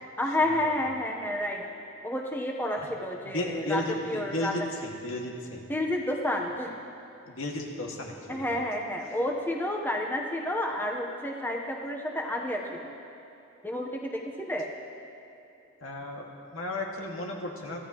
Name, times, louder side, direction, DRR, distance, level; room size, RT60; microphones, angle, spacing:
voice 1, 0.2-1.6 2.0-4.5 5.7-6.7 8.3-12.9 13.6-14.7, left 1 dB, 10° left, 0 dB, 0.9 m, -30 dB
voice 2, 3.3-5.7 7.3-8.6 15.8-17.8, left 1 dB, 80° left, 0 dB, 2.0 m, -34 dB
24.5 x 15.5 x 3.0 m, 2.9 s
head